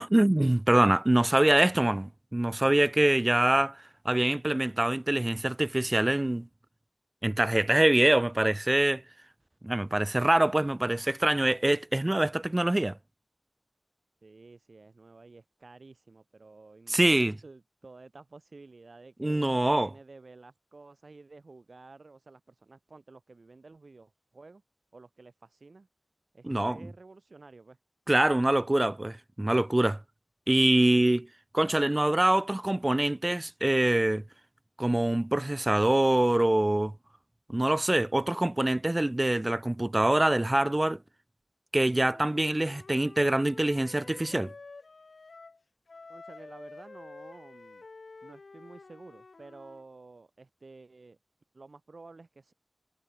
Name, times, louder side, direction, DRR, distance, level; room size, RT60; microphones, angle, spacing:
voice 1, 0.0-6.5 7.2-9.0 9.6-13.0 16.9-17.4 19.2-19.9 26.4-26.8 28.1-30.0 30.5-31.3 31.5-34.2 34.8-36.9 37.5-41.0 41.7-44.5, right 1 dB, 25° right, 1.2 m, -24 dB
voice 2, 14.2-24.6 24.9-25.9 26.3-27.8 46.1-47.8 48.2-51.2 51.5-52.5, right 3 dB, 75° right, 3.2 m, -51 dB
Wind instrument woodwind instrument, 41.9-45.6 45.9-49.8, left 3 dB, 85° left, 4.4 m, -49 dB
wide cardioid pair, 70°, 0 cm